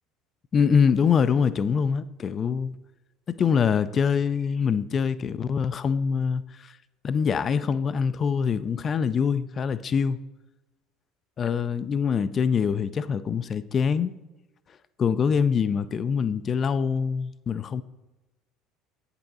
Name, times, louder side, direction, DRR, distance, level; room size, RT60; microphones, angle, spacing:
voice 1, 0.5-2.7 3.3-6.7 7.0-10.2 11.4-14.1 15.0-17.8, left 6 dB, 35° left, 0.4 m, -24 dB
8.7 x 5.4 x 4.0 m
figure-of-eight pair, 65°, 0 cm